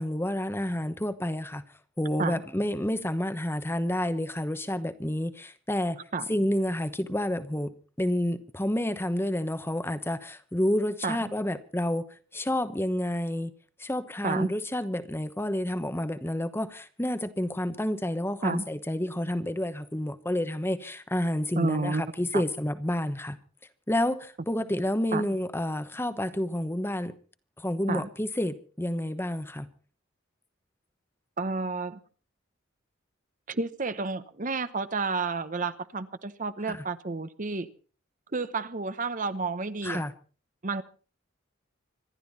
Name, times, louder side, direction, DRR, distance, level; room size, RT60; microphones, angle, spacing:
voice 1, 0.0-1.6 2.0-6.0 6.3-7.7 8.0-12.1 12.3-13.5 13.8-23.4 23.9-27.1 27.6-29.7 36.7-36.8 39.8-40.1, left 1 dB, 10° left, 1.0 m, -29 dB
voice 2, 21.6-22.0 22.3-22.4 25.1-25.3 27.9-28.1 31.4-32.0 33.5-37.7 38.3-40.0 40.6-40.8, right 3 dB, 40° right, 0.9 m, -30 dB
26.0 x 12.0 x 4.2 m
head